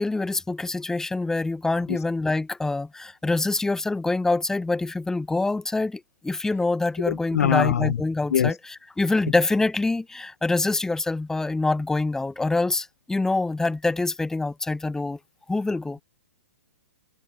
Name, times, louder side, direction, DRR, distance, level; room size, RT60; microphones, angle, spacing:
voice 1, 0.0-15.2 15.5-16.0, left 2 dB, 5° left, 1.6 m, -25 dB
voice 2, 7.1-7.9 8.3-8.5, left 9 dB, 70° left, 0.4 m, -22 dB
figure-of-eight pair, 120°, 9 cm